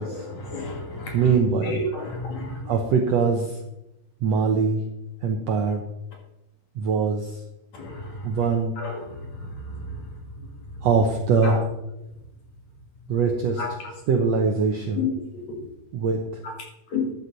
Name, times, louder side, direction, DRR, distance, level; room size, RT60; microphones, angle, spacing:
voice 1, 0.0-1.2 1.6-2.7 7.7-8.4 8.8-9.0 9.4-10.0 11.4-11.6 13.6-13.7 15.0-15.1 16.9-17.1, left 3 dB, 55° left, 0 dB, 3.6 m, -31 dB
voice 2, 1.1-1.8 2.7-3.6 4.2-4.8 5.2-5.8 6.8-7.4 8.2-8.8 10.8-11.6 13.1-13.6 14.1-15.1 15.9-16.3, right 5 dB, 70° right, 3 dB, 1.6 m, -22 dB
13.0 x 9.9 x 4.1 m, 0.88 s
omnidirectional pair, 4.2 m